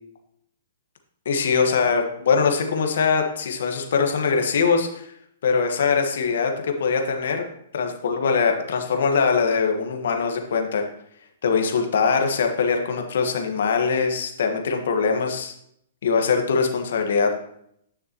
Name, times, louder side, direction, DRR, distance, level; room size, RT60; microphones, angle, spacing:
voice 1, 1.2-5.1 5.4-7.5 7.7-10.9 11.4-15.5 16.0-17.3, left 5 dB, 75° left, 4 dB, 1.4 m, -22 dB
9.9 x 6.6 x 3.0 m, 0.71 s
hypercardioid pair, 140°, 0 cm